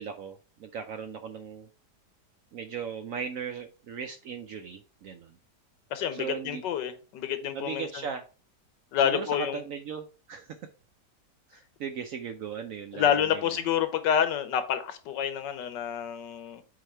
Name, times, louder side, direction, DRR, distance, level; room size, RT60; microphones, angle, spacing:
voice 1, 0.0-1.7 2.5-5.3 6.1-6.6 7.5-8.2 9.0-10.6 11.5-13.4, right 7 dB, 70° right, 7 dB, 0.8 m, -37 dB
voice 2, 5.9-8.0 8.9-9.6 12.9-16.6, left 9 dB, 85° left, 11 dB, 1.5 m, -28 dB
4.8 x 4.8 x 4.4 m, 0.35 s
omnidirectional pair, 1.9 m